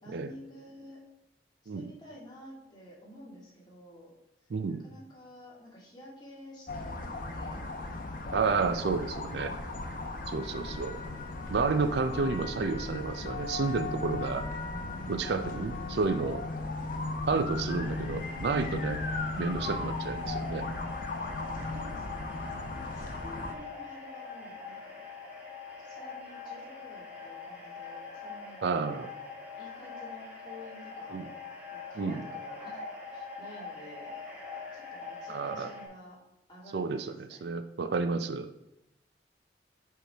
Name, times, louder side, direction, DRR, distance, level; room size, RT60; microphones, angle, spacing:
voice 1, 0.0-1.0 1.7-4.1 4.7-7.6 10.5-11.0 21.5-25.0 25.8-28.8 29.6-31.3 31.7-32.8 33.1-34.2 34.7-36.2 36.5-37.4, left 1 dB, 25° left, -5 dB, 2.0 m, -51 dB
voice 2, 4.5-4.8 8.3-9.5 10.3-11.0 11.5-14.4 15.1-16.4 17.3-19.0 19.4-20.7 28.6-29.1 31.1-31.3 32.0-32.2 35.3-35.7 36.7-38.5, right 4 dB, 65° right, 9 dB, 0.4 m, -31 dB
sound 1, 6.7-23.5, left 2 dB, 50° left, 0.8 m, -36 dB
sound 2, 17.8-35.9, left 4 dB, 10° right, 1.9 m, -43 dB
8.0 x 4.7 x 3.4 m, 0.88 s
head